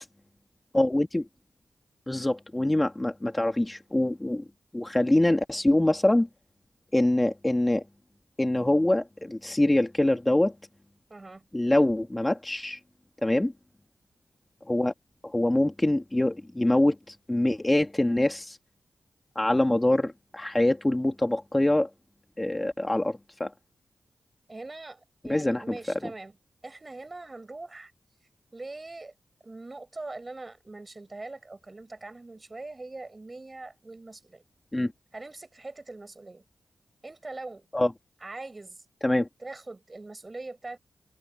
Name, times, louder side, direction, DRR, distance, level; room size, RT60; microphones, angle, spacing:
voice 1, 0.7-1.3 2.1-4.4 4.7-6.3 6.9-7.8 8.4-10.5 11.5-12.8 13.2-13.5 14.7-14.9 15.2-18.6 19.4-21.9 22.4-23.5 25.3-25.6 34.7-34.9 37.7-37.9 39.0-39.3, left 1 dB, 20° left, 2.6 m, -24 dB
voice 2, 11.1-11.4 24.5-26.4 26.6-27.9 28.5-29.1 29.4-34.4 35.1-36.4 37.0-37.7 38.2-38.8 39.4-40.8, right 2 dB, 35° right, 6.9 m, -42 dB
cardioid pair, 45°, 0 cm